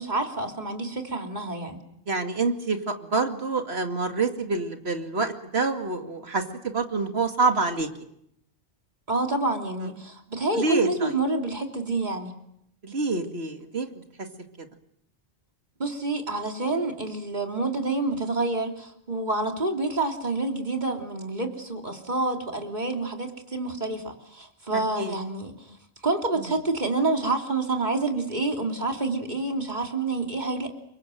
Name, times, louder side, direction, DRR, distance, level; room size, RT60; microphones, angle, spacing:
voice 1, 0.0-1.8 9.1-12.3 15.8-25.7 26.0-30.7, right 2 dB, 45° right, 3 dB, 3.5 m, -28 dB
voice 2, 2.1-7.9 10.5-11.2 12.8-13.9 14.6-14.7 25.0-25.1 26.4-26.5, right 3 dB, 75° right, 5 dB, 2.5 m, -27 dB
29.0 x 24.0 x 7.8 m, 0.76 s
omnidirectional pair, 1.1 m